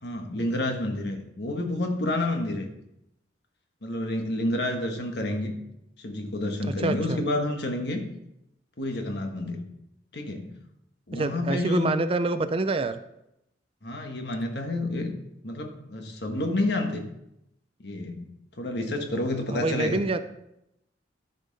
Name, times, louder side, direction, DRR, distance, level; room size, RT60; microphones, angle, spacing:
voice 1, 0.0-2.7 3.8-5.5 6.0-8.0 8.8-9.6 10.1-10.5 11.1-11.9 13.8-15.2 15.4-17.1 17.8-18.3 18.6-20.0, left 1 dB, 65° left, 4 dB, 1.4 m, -29 dB
voice 2, 6.8-7.2 11.1-13.0 19.5-20.2, right 3 dB, 30° right, 10 dB, 0.4 m, -26 dB
13.0 x 5.5 x 4.0 m, 0.83 s
head